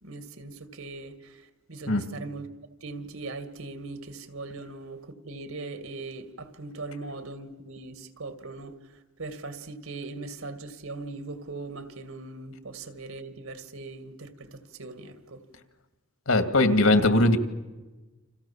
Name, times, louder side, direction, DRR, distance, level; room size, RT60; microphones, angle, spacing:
voice 1, 0.0-2.5 2.8-15.4, right 3 dB, 80° right, 2.3 m, -40 dB
voice 2, 16.3-17.4, left 2 dB, 80° left, 2.4 m, -20 dB
29.5 x 26.5 x 7.3 m
head